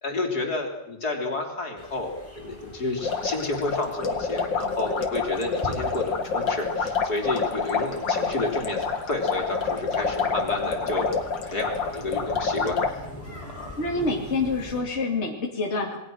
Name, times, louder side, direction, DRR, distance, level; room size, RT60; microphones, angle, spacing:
voice 1, 0.0-13.0 13.4-13.8, left 2 dB, 55° left, 2 dB, 4.0 m, -30 dB
sound 1, 1.8-14.8, equal, 5° left, 6.2 m, -42 dB
sound 2, 3.0-12.9, left 5 dB, 85° left, 2.8 m, -28 dB
voice 2, 13.8-16.0, left 3 dB, 35° left, 0 dB, 2.6 m, -27 dB
28.0 x 20.5 x 6.3 m, 0.83 s
omnidirectional pair, 2.0 m